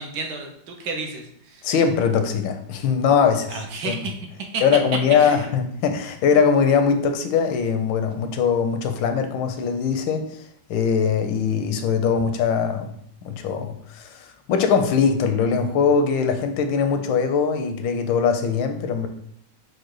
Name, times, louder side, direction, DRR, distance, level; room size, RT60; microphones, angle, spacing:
voice 1, 0.0-1.7 3.5-4.1 4.5-4.6 5.2-5.5, right 4 dB, 70° right, 3 dB, 1.2 m, -32 dB
voice 2, 1.6-4.0 4.6-10.3 10.7-12.9 13.2-14.2 14.5-19.1, left 6 dB, 85° left, 6 dB, 1.3 m, -21 dB
4.9 x 2.2 x 4.6 m, 0.69 s
omnidirectional pair, 2.0 m